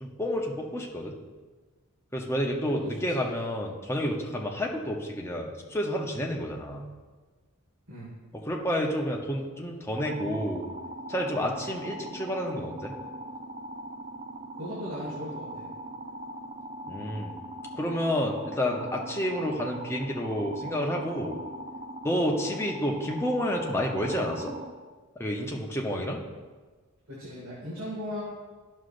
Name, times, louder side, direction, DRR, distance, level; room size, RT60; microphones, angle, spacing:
voice 1, 0.0-1.1 2.1-6.8 8.3-10.7 11.1-12.9 16.9-17.3 17.7-21.4 22.0-24.5 25.2-26.2, equal, 10° left, 0 dB, 0.7 m, -30 dB
voice 2, 2.8-3.2 7.9-8.1 14.5-15.7 27.1-28.2, equal, 70° right, -6 dB, 1.8 m, -37 dB
sound 1, 10.0-24.7, right 1 dB, 30° right, 0.4 m, -40 dB
11.0 x 6.3 x 2.5 m, 1.4 s
head